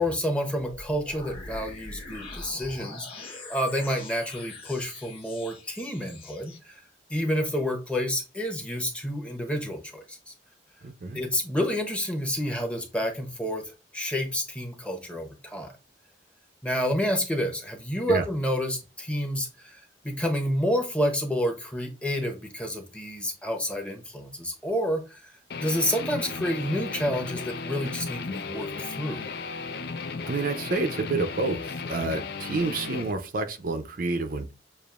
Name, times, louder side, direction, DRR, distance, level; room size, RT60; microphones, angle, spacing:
voice 1, 0.0-6.8 7.1-10.3 11.1-15.7 16.6-25.3 25.6-29.2, equal, 5° left, 0.9 m, -29 dB
sound 1, 0.6-6.6, left 2 dB, 30° left, 1.2 m, -43 dB
voice 2, 10.8-11.2 18.1-18.2 30.3-34.5, right 3 dB, 55° right, 0.6 m, -29 dB
Guitar, 25.5-33.1, left 4 dB, 65° left, 0.5 m, -35 dB
6.8 x 2.5 x 2.4 m
head